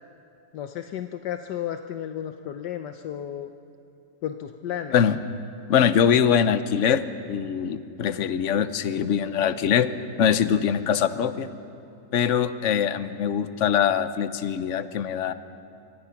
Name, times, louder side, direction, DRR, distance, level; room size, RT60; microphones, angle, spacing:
voice 1, 0.5-3.5 4.2-5.0, left 10 dB, 80° left, 7 dB, 1.4 m, -33 dB
voice 2, 5.7-9.9 10.2-11.5 12.1-15.3, left 8 dB, 55° left, 12 dB, 1.1 m, -23 dB
26.5 x 24.5 x 5.9 m, 2.7 s
omnidirectional pair, 1.8 m